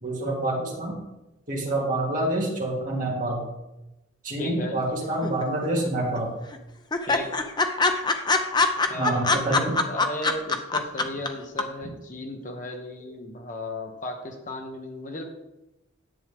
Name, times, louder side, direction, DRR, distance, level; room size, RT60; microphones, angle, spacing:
voice 1, 0.0-1.0 1.5-3.4 4.2-6.3 8.9-9.8, right 1 dB, 40° right, -3 dB, 2.6 m, -27 dB
voice 2, 4.4-4.8 7.1-7.3 8.9-15.2, left 1 dB, 40° left, 3 dB, 1.2 m, -35 dB
sound 1, 5.2-5.9 6.2-6.3 6.5-6.6 6.9-11.3 11.6-11.7, left 3 dB, 20° left, 0.6 m, -23 dB
10.5 x 8.1 x 3.6 m, 0.95 s
head